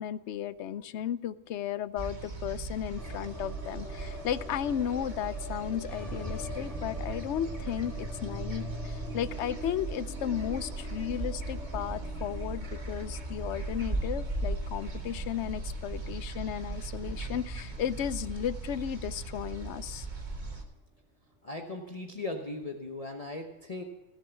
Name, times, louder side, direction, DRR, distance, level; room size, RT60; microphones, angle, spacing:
voice 1, 0.0-20.1, left 10 dB, 70° left, 16 dB, 0.9 m, -34 dB
sound 1, 2.0-20.6, right 2 dB, 40° right, 1.7 m, -38 dB
sound 2, 2.9-19.1 19.3-19.4 19.7-20.4, left 1 dB, ahead, 2.0 m, -45 dB
voice 2, 21.4-23.8, left 2 dB, 30° left, 2 dB, 1.1 m, -38 dB
16.5 x 7.6 x 7.0 m, 1.1 s
omnidirectional pair, 1.3 m